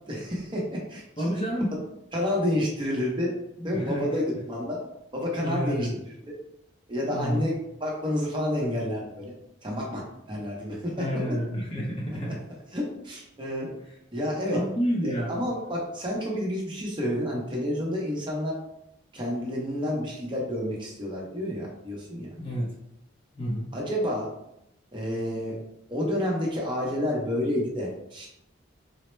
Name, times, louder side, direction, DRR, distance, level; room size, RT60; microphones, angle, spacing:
voice 1, 0.1-1.0 2.1-3.3 3.6-4.8 5.1-5.9 6.9-9.3 9.6-11.1 12.7-13.7 14.1-14.6 15.0-18.6 19.1-22.3 23.7-24.3 24.9-25.6 25.9-28.3, left 1 dB, 25° right, -3 dB, 0.7 m, -29 dB
voice 2, 1.2-1.7 3.6-4.4 5.4-6.0 7.1-7.4 11.0-12.4 14.5-15.4 22.4-22.7 23.3-23.7, equal, 25° left, -2 dB, 0.6 m, -29 dB
4.1 x 2.1 x 3.1 m, 0.80 s
head